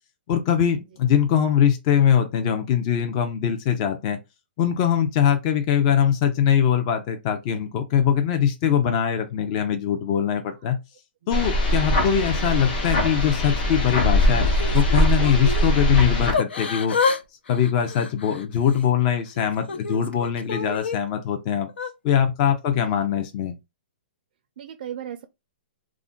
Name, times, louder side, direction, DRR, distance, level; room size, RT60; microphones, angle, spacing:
voice 1, 0.3-4.2 4.6-10.8 11.3-14.5 14.7-17.1 17.5-21.7 22.0-23.5, left 8 dB, 35° left, 0.5 m, -22 dB
sound 1, 11.3-16.3, left 1 dB, 50° left, 0.9 m, -21 dB
Yell / Crying sobbing, 14.4-15.7 16.3-17.2 17.5-18.8 19.4-21.0 21.7-21.9, left 5 dB, 90° left, 0.5 m, -28 dB
voice 2, 22.7-23.3 24.6-25.2, right 9 dB, 55° right, 0.4 m, -37 dB
2.4 x 2.1 x 3.7 m
hypercardioid pair, 150°, 6 cm